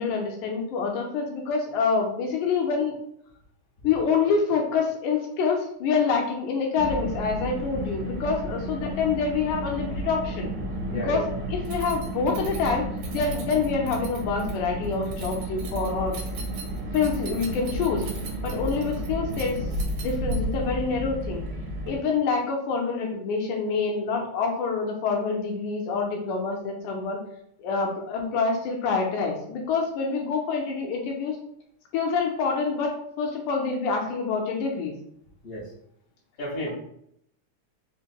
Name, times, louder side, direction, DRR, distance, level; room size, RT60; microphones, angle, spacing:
voice 1, 0.0-2.9 3.8-10.5 10.9-11.2 11.5-12.8 13.1-16.2 16.9-18.0 18.4-19.6 20.0-21.4 21.9-27.2 27.6-31.4 31.9-34.9, left 5 dB, 80° left, 1 dB, 1.9 m, -26 dB
Car, 6.8-22.0, right 1 dB, 55° right, 1.6 m, -32 dB
voice 2, 10.9-11.3 18.5-18.7 35.4-35.7 36.4-36.7, equal, 40° left, -5 dB, 0.8 m, -33 dB
Keys jangling, 11.7-20.7, right 5 dB, 85° right, 2.2 m, -43 dB
5.0 x 2.7 x 2.9 m, 0.71 s
omnidirectional pair, 3.7 m